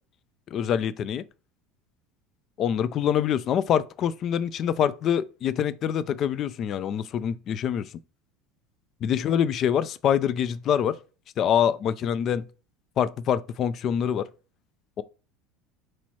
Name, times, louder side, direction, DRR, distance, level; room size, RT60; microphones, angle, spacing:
voice 1, 0.5-1.2 2.6-7.9 9.0-11.0 11.4-12.5 13.0-14.3 15.0-15.1, left 9 dB, 45° left, 0.3 m, -25 dB
3.1 x 2.9 x 4.5 m
supercardioid pair, 110°, 0 cm